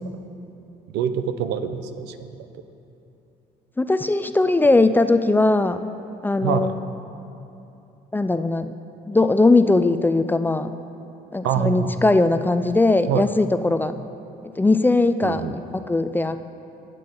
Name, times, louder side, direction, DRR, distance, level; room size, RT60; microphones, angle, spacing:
voice 1, 0.9-2.3 6.4-6.7 11.4-11.9 13.1-13.3 15.2-15.5, right 9 dB, 85° right, 10 dB, 0.7 m, -25 dB
voice 2, 3.8-5.8 6.2-6.7 8.1-8.7 9.1-10.7 11.3-13.9 14.6-16.4, left 2 dB, 10° left, 10 dB, 0.4 m, -19 dB
20.5 x 7.6 x 3.8 m, 2.9 s
cardioid pair, 110°, 17 cm